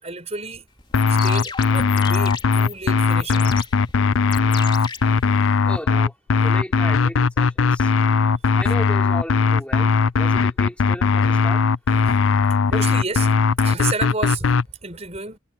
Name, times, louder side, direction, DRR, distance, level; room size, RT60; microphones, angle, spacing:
voice 1, 0.0-0.7 1.1-3.7 12.7-13.3 13.6-15.4, right 4 dB, 35° right, 5.6 m, -31 dB
sound 1, 0.8-5.8, left 6 dB, 25° left, 3.4 m, -36 dB
sound 2, 0.9-14.6, left 5 dB, 85° left, 0.5 m, -18 dB
voice 2, 5.6-7.9 8.6-11.6, equal, 5° left, 5.7 m, -35 dB
head